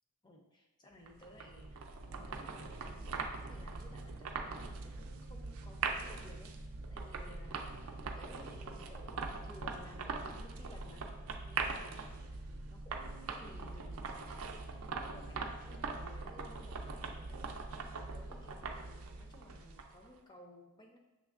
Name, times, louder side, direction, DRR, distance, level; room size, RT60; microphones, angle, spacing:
voice 1, 0.2-7.8 8.1-11.1 11.4-14.6 15.0-17.4 18.1-21.0, left 1 dB, 20° left, 1 dB, 0.5 m, -57 dB
sound 1, 1.1-20.1, right 4 dB, 75° right, 0.4 m, -42 dB
6.2 x 3.1 x 2.4 m, 1.1 s
head